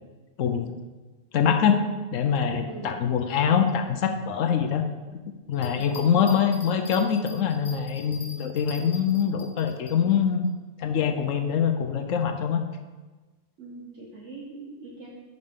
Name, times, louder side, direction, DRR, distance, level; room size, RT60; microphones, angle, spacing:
voice 1, 0.4-0.7 1.3-4.8 5.5-10.5 10.8-12.6, left 7 dB, 75° left, 6 dB, 1.0 m, -24 dB
voice 2, 2.7-3.0 5.8-6.0 13.6-15.1, right 3 dB, 65° right, -3 dB, 1.2 m, -42 dB
Bell, 5.5-10.0 10.4-10.5, left 3 dB, 35° left, 0.7 m, -44 dB
10.5 x 4.0 x 3.6 m, 1.3 s
omnidirectional pair, 1.4 m